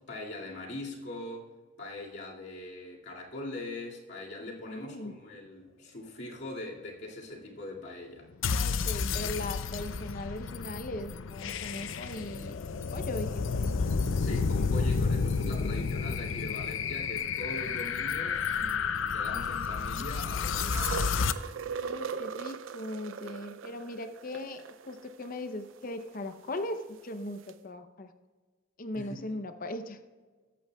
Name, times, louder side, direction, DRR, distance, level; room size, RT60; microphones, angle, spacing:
voice 1, 0.1-1.5 1.8-8.3 14.2-21.4 28.9-29.2, left 2 dB, 60° left, -3 dB, 2.3 m, -42 dB
voice 2, 4.4-5.1 8.5-12.5 12.9-13.7 21.8-28.1 28.8-30.0, left 1 dB, 45° left, 9 dB, 0.7 m, -39 dB
sound 1, 8.4-21.3, left 5 dB, 85° left, 0.5 m, -31 dB
sound 2, 20.6-26.6 27.5-27.6, right 6 dB, 85° right, 0.5 m, -40 dB
20.0 x 8.5 x 2.3 m, 1.4 s
head